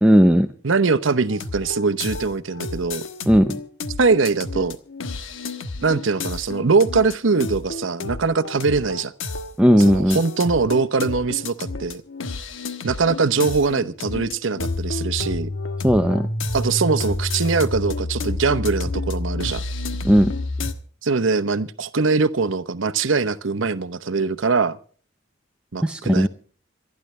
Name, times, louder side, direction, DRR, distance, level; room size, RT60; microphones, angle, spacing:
voice 1, 0.0-0.5 3.3-3.6 9.6-10.2 15.8-16.3 20.0-20.3 25.8-26.3, equal, 5° right, 0.6 m, -16 dB
voice 2, 0.6-3.0 4.0-4.8 5.8-9.1 9.8-12.0 12.8-15.5 16.5-19.6 21.0-24.8 25.7-26.3, right 4 dB, 80° right, 0.8 m, -22 dB
sound 1, 1.3-20.7, left 2 dB, 85° left, 1.3 m, -30 dB
27.0 x 10.5 x 3.2 m
head